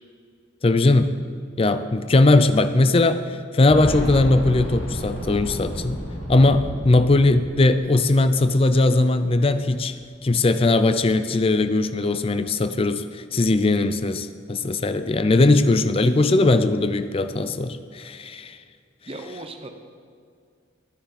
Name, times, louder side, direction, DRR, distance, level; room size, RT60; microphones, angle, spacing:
voice 1, 0.6-1.1 1.6-3.2 3.5-6.0 6.3-9.9 10.2-13.0 13.3-18.6, left 2 dB, 30° left, 11 dB, 0.5 m, -19 dB
Boom, 3.7-8.4 8.7-8.8 9.9-10.0, equal, 85° left, 3.3 m, -32 dB
voice 2, 19.1-19.7, right 2 dB, 30° right, 6 dB, 0.9 m, -36 dB
13.0 x 10.0 x 5.2 m, 2.3 s
head